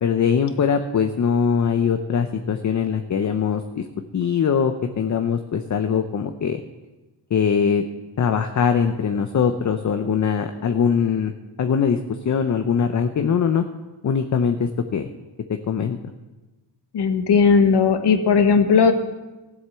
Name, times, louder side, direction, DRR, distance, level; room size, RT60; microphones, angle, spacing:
voice 1, 0.0-3.8 4.1-6.6 7.3-7.8 8.2-11.3 11.6-12.0 12.2-13.6 14.0-15.1 15.7-16.0, left 7 dB, 40° left, 7 dB, 0.8 m, -21 dB
voice 2, 16.9-18.9, left 5 dB, 65° left, 7 dB, 1.4 m, -16 dB
14.5 x 8.0 x 6.9 m, 1.1 s
cardioid pair, 105°, 43 cm